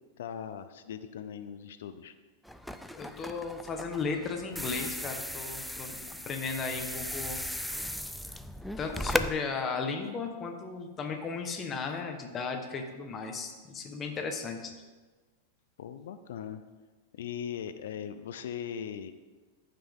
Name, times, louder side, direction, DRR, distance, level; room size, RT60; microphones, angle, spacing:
voice 1, 0.2-2.1 15.8-16.6 17.1-19.1, left 8 dB, 80° left, 10 dB, 0.5 m, -39 dB
sound 1, 2.4-9.3, equal, ahead, 0.3 m, -36 dB
voice 2, 2.9-7.4 8.8-14.7, left 4 dB, 20° left, 4 dB, 1.1 m, -35 dB
14.0 x 5.9 x 3.6 m, 1.3 s
supercardioid pair, 150°, 0 cm